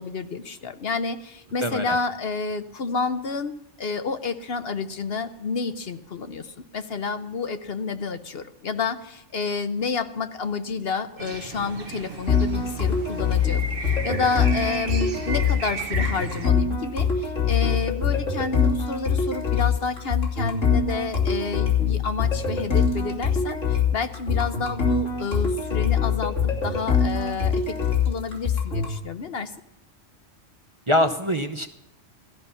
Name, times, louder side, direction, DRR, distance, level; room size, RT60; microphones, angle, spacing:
voice 1, 0.0-27.8 28.0-29.5, left 4 dB, 55° left, 10 dB, 1.0 m, -30 dB
voice 2, 1.6-2.0 30.9-31.7, left 1 dB, 30° right, 7 dB, 0.8 m, -23 dB
sound 1, 11.2-16.5, right 4 dB, 50° right, 1.2 m, -34 dB
sound 2, 12.3-29.0, left 6 dB, 90° left, 3.3 m, -23 dB
17.0 x 13.5 x 5.6 m, 0.90 s
omnidirectional pair, 1.3 m